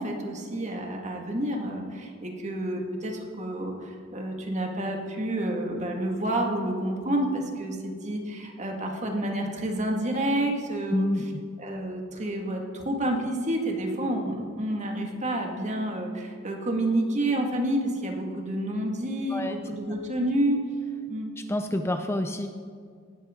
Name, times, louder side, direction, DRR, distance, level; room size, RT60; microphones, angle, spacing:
voice 1, 0.0-11.1 11.6-20.6 21.1-21.3, right 1 dB, 35° right, 1 dB, 2.0 m, -29 dB
voice 2, 10.9-11.4 19.3-19.6 21.4-22.5, left 1 dB, 15° left, 7 dB, 0.5 m, -28 dB
18.5 x 12.5 x 3.8 m, 2.1 s
head